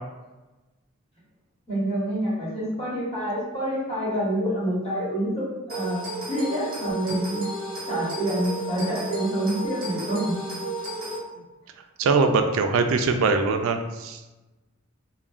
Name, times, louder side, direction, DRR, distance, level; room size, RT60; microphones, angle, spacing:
voice 1, 1.7-6.0 6.3-7.4 7.9-10.3, right 1 dB, 30° left, -9 dB, 1.2 m, -27 dB
sound 1, 5.7-11.2, right 1 dB, 45° right, 0.8 m, -33 dB
voice 2, 12.0-14.2, right 4 dB, 85° right, 7 dB, 0.3 m, -22 dB
3.2 x 2.1 x 2.4 m, 1.1 s
head